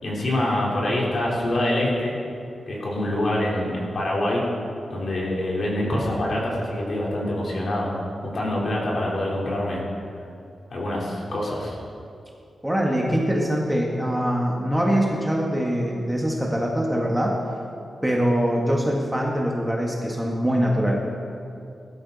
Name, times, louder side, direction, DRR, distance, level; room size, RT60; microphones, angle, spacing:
voice 1, 0.0-2.1 2.7-4.4 4.9-9.8 10.7-11.8, left 1 dB, 50° left, -4 dB, 3.7 m, -25 dB
voice 2, 12.6-17.4 18.0-21.0, equal, 5° right, -2 dB, 1.4 m, -23 dB
19.5 x 12.5 x 4.1 m, 2.5 s
wide cardioid pair, 140°, 0 cm